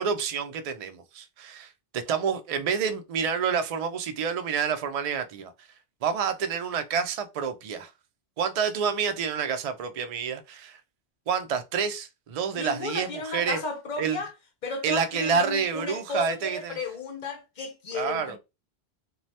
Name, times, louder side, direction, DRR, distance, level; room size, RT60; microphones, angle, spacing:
voice 1, 0.0-5.5 6.0-7.9 8.4-10.8 11.3-13.6 14.0-14.2 14.8-16.8 17.9-18.4, right 6 dB, 60° right, 0.4 m, -28 dB
voice 2, 12.5-14.3 14.6-18.4, left 3 dB, 55° left, 0.6 m, -34 dB
2.7 x 2.2 x 3.2 m
omnidirectional pair, 1.1 m